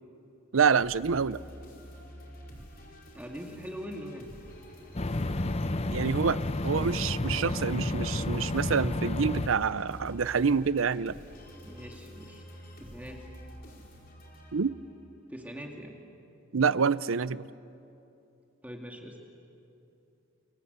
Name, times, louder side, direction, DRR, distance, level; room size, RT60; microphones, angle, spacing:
voice 1, 0.5-1.4 5.9-11.1 14.5-14.7 16.5-17.5, right 5 dB, 80° right, 17 dB, 0.6 m, -27 dB
sound 1, 0.8-15.0, equal, 50° left, 4.7 m, -49 dB
voice 2, 3.1-4.3 11.6-12.4 12.8-13.3 15.3-16.0 18.6-19.2, equal, 10° right, 1 dB, 2.2 m, -42 dB
sound 2, 4.9-9.5, left 2 dB, 30° left, 0.8 m, -31 dB
28.5 x 24.5 x 8.1 m, 2.8 s
head